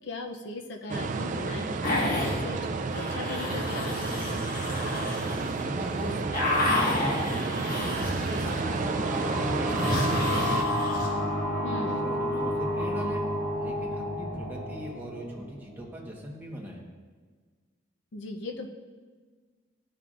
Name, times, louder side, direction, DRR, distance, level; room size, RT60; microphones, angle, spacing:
voice 1, 0.0-4.5 11.6-12.2 18.1-18.7, left 3 dB, 65° left, 3 dB, 0.6 m, -39 dB
sound 1, 0.9-10.6, right 4 dB, 40° right, 0.4 m, -31 dB
sound 2, 1.8-2.4 2.9-5.6 5.9-8.8 9.1-11.1, left 1 dB, 50° left, 1.6 m, -30 dB
voice 2, 5.2-7.6 8.1-10.7 11.8-13.2 13.5-16.8, equal, 10° right, -3 dB, 1.3 m, -38 dB
sound 3, 8.3-15.7, left 1 dB, 10° left, 2.4 m, -30 dB
13.0 x 5.7 x 2.5 m, 1.5 s
head